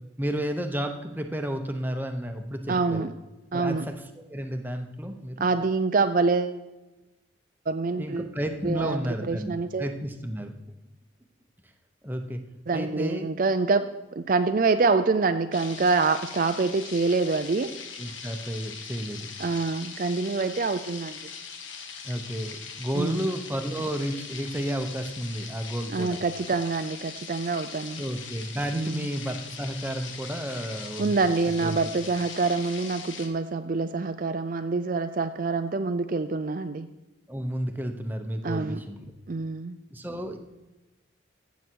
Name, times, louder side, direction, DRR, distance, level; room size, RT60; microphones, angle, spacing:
voice 1, 0.2-3.1 3.5-5.5 8.0-10.5 12.0-12.4 12.7-13.3 18.0-19.3 22.0-26.2 28.0-31.2 31.6-31.9 37.3-39.1 39.9-40.4, equal, 10° right, 6 dB, 0.9 m, -32 dB
voice 2, 2.7-3.1 3.5-3.9 5.4-6.6 7.7-8.3 8.6-9.9 12.7-17.7 19.4-21.2 22.9-23.3 25.9-28.0 28.7-29.1 31.0-36.9 38.4-38.8 39.3-39.8, right 4 dB, 45° right, 9 dB, 0.4 m, -26 dB
sound 1, 15.5-33.3, left 6 dB, 90° left, 1.6 m, -41 dB
15.0 x 8.1 x 4.6 m, 1.1 s
head